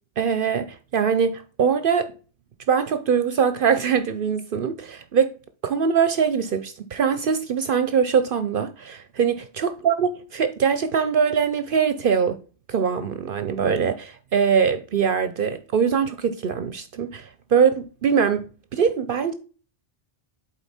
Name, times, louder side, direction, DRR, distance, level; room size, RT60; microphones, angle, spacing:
voice 1, 0.2-2.1 2.7-5.3 5.6-12.4 12.7-19.3, right 6 dB, 60° right, 0.8 m, -22 dB
7.9 x 4.5 x 4.2 m
omnidirectional pair, 1.1 m